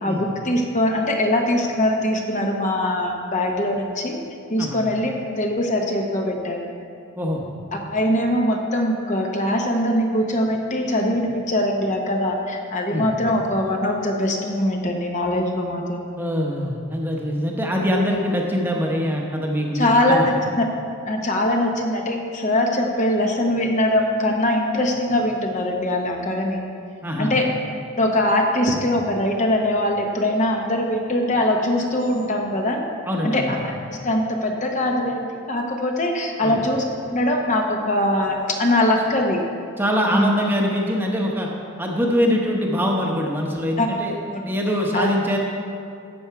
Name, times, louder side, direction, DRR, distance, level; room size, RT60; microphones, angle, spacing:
voice 1, 0.0-4.2 4.5-5.1 5.4-6.7 7.7-16.0 19.7-20.6 21.1-26.6 27.2-27.5 28.0-32.8 33.2-33.6 33.9-39.4 40.1-40.3 43.8-43.9 44.3-44.4 44.9-45.1, left 1 dB, 35° left, 2 dB, 0.8 m, -22 dB
voice 2, 7.2-7.5 12.9-13.1 16.2-20.2 27.0-27.4 33.1-33.5 36.4-36.5 39.8-41.5 41.8-44.2 44.4-45.4, equal, 10° right, -1 dB, 0.9 m, -23 dB
11.5 x 7.9 x 4.7 m, 2.5 s
head